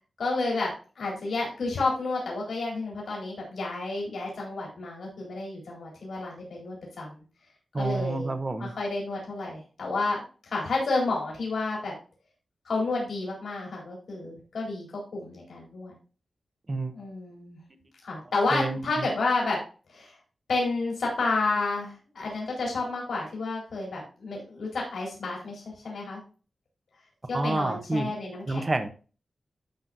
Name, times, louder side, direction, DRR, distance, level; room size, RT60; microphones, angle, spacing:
voice 1, 0.2-0.7 1.0-7.1 7.8-8.3 8.6-10.2 10.5-11.9 12.7-14.9 15.1-15.9 16.9-17.6 18.0-19.6 19.9-20.1 20.5-26.2 27.3-28.6, left 3 dB, 80° left, -3 dB, 3.8 m, -30 dB
voice 2, 7.7-8.7 16.7-16.9 18.5-19.1 27.3-28.1 28.5-28.9, right 2 dB, 30° right, 8 dB, 1.0 m, -29 dB
11.5 x 6.3 x 2.6 m, 0.36 s
wide cardioid pair, 130°, 0 cm